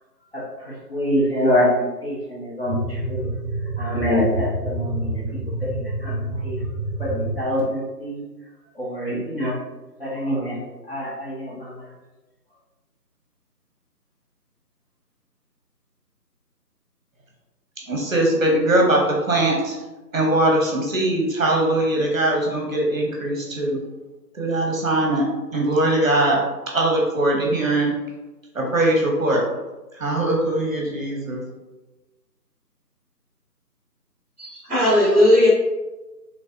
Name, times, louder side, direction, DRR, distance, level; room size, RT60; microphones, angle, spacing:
voice 1, 0.3-3.3 3.8-5.2 5.7-6.6 7.0-8.2 8.7-9.6 10.0-10.6 10.9-11.7, left 1 dB, 40° left, -7 dB, 0.8 m, -25 dB
sound 1, 2.7-7.4, right 1 dB, 30° right, 1.0 m, -27 dB
voice 2, 17.9-19.8 20.1-23.8 24.3-26.4 26.7-27.9 28.5-29.4 30.0-31.4, right 1 dB, 55° right, -1 dB, 0.7 m, -21 dB
voice 3, 34.4-35.5, left 1 dB, 5° right, -8 dB, 1.1 m, -17 dB
3.2 x 2.9 x 2.6 m, 1.1 s
figure-of-eight pair, 155°, 48 cm